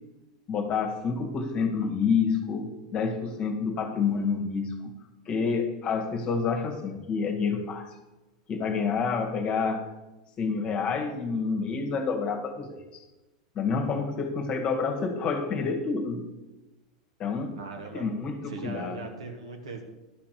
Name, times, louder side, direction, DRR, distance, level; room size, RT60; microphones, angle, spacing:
voice 1, 0.5-4.8 5.3-7.9 8.5-9.8 10.4-13.0 13.6-16.3 17.2-17.6 17.9-19.1, left 5 dB, 35° left, 4 dB, 2.0 m, -28 dB
voice 2, 17.5-18.0 18.5-19.8, right 3 dB, 75° right, 3 dB, 1.9 m, -39 dB
12.0 x 5.9 x 6.9 m, 1.1 s
figure-of-eight pair, 90°, 3 cm